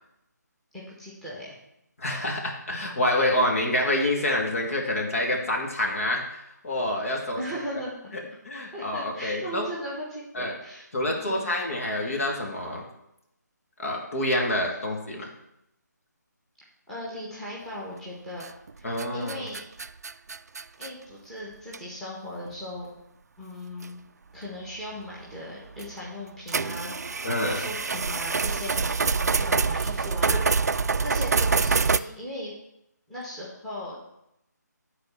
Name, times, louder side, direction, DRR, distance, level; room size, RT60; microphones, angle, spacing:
voice 1, 0.7-1.6 7.1-7.9 8.7-11.5 16.9-18.5 18.7-19.6 20.8-22.9 23.4-24.0 24.3-32.5 33.1-34.0, equal, 5° left, -6 dB, 1.7 m, -38 dB
voice 2, 2.0-7.4 8.1-9.7 10.3-10.5 10.9-12.8 13.8-15.3 18.8-19.5 27.2-27.6 30.3-30.4, left 1 dB, 50° left, 1 dB, 2.1 m, -27 dB
sound 1, 18.4-18.7 19.0-20.9 21.7-21.8 22.5-22.6 23.8-23.9 25.8-25.9 26.5-32.0, right 4 dB, 60° right, 0.4 m, -26 dB
11.5 x 4.3 x 7.3 m, 0.82 s
figure-of-eight pair, 155°, 10 cm